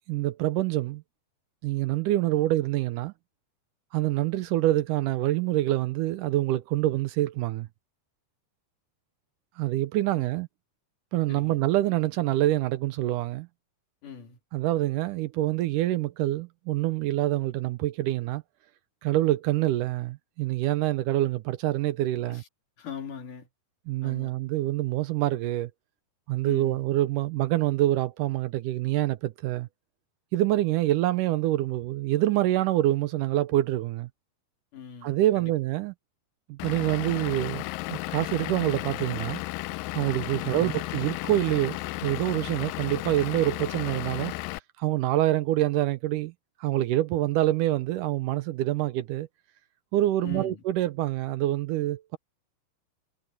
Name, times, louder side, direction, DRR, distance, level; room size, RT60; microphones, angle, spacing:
voice 1, 0.1-1.0 1.6-3.1 3.9-7.7 9.6-10.5 11.1-13.5 14.5-18.4 19.0-22.4 23.9-25.7 26.3-29.7 30.3-34.1 35.0-35.9 36.5-37.6 37.9-39.4 39.9-44.3 44.8-46.3 46.6-49.3 49.9-52.2, right 15 dB, 80° right, 2.1 m, -26 dB
voice 2, 11.3-11.6 14.0-14.4 22.3-22.5 22.8-23.5 24.0-24.3 26.4-26.9 34.7-35.5 40.4-40.7 50.2-50.6, left 7 dB, 65° left, 4.3 m, -42 dB
Vehicle / Engine, 36.6-44.6, left 21 dB, 85° left, 2.2 m, -34 dB
omnidirectional pair, 4.0 m